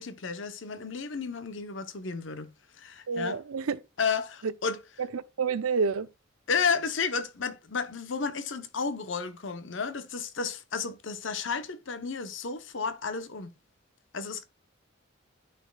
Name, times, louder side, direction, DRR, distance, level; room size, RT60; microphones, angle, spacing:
voice 1, 0.0-2.5 2.8-3.4 4.0-4.8 6.5-13.5 14.1-14.4, left 5 dB, 60° left, 0.8 m, -32 dB
voice 2, 3.1-3.8 5.1-6.1, right 5 dB, 90° right, 0.6 m, -29 dB
12.5 x 4.3 x 2.3 m
head